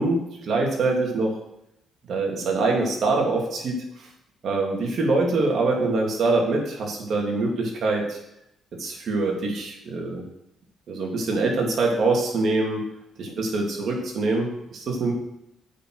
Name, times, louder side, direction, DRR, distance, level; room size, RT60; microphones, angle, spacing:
voice 1, 0.0-1.4 2.1-4.1 4.4-8.2 8.8-10.2 10.9-12.9 13.2-15.1, right 3 dB, 60° right, 0 dB, 2.6 m, -24 dB
8.2 x 6.0 x 6.3 m, 0.81 s
cardioid pair, 90°, 0 cm